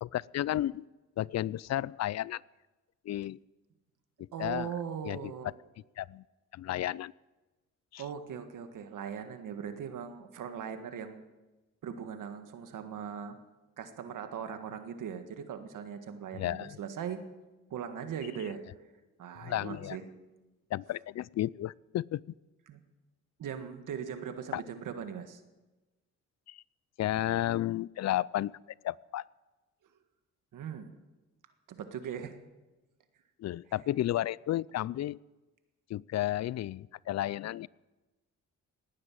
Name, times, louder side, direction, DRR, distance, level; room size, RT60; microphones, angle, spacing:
voice 1, 0.0-0.8 1.2-2.4 3.1-3.4 4.2-4.7 5.0-5.3 6.0-6.2 6.5-7.1 7.9-8.0 16.3-16.8 19.4-20.0 20.7-22.2 24.5-24.6 26.5-26.6 27.0-28.5 28.8-29.2 33.4-35.2 35.9-37.7, left 13 dB, 55° left, 23 dB, 0.4 m, -32 dB
voice 2, 4.3-5.5 8.0-11.2 11.8-13.4 13.8-17.2 17.7-18.6 19.2-20.1 22.7-22.8 23.4-25.4 30.5-31.0 31.7-32.4, right 7 dB, 75° right, 8 dB, 1.8 m, -39 dB
18.5 x 9.6 x 7.7 m, 1.1 s
cardioid pair, 85°, 32 cm